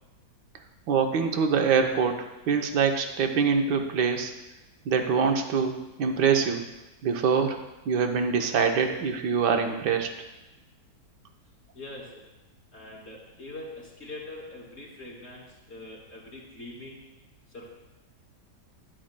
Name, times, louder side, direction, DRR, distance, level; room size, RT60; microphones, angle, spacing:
voice 1, 0.9-4.3 4.9-6.6 7.0-7.6 7.9-10.1, right 6 dB, 75° right, 5 dB, 1.5 m, -24 dB
voice 2, 11.7-12.2 12.7-17.0 17.5-17.7, left 2 dB, 40° left, -4 dB, 2.8 m, -43 dB
12.5 x 10.5 x 2.2 m, 1.0 s
omnidirectional pair, 1.9 m